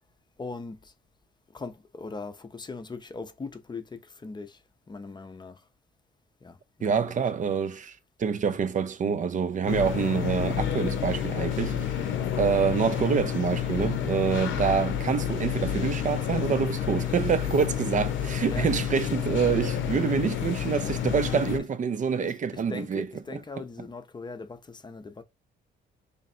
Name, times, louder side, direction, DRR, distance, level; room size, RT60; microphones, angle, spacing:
voice 1, 0.4-0.9 1.5-4.6 4.9-5.6 6.4-7.3 12.1-12.3 17.5-17.9 18.4-18.8 20.9-21.0 21.6-21.7 22.2-25.2, left 4 dB, 20° left, 0.6 m, -40 dB
voice 2, 6.8-12.1 12.4-23.1 23.3-23.4, right 6 dB, 40° right, 0.5 m, -26 dB
sound 1, 9.7-21.6, left 9 dB, 75° left, 0.7 m, -29 dB
3.2 x 2.5 x 4.2 m
cardioid pair, 90°, 20 cm